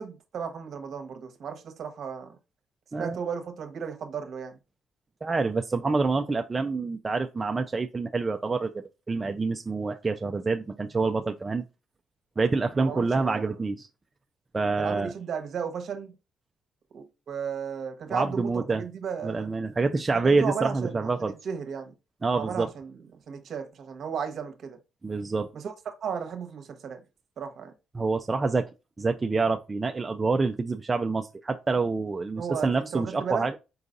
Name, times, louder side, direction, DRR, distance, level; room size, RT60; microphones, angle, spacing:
voice 1, 0.0-2.4 3.0-4.6 12.8-13.5 14.8-16.1 16.9-19.5 20.1-21.9 22.3-22.9 23.3-24.8 25.5-27.0 27.4-27.7 32.4-33.5, right 7 dB, 60° right, 1.0 m, -35 dB
voice 2, 5.2-11.6 12.4-13.9 14.5-15.1 18.1-18.8 19.2-21.3 22.2-22.7 25.0-25.5 27.9-28.7 29.0-33.6, right 3 dB, 25° right, 0.4 m, -27 dB
4.8 x 3.9 x 2.5 m
cardioid pair, 90°, 0 cm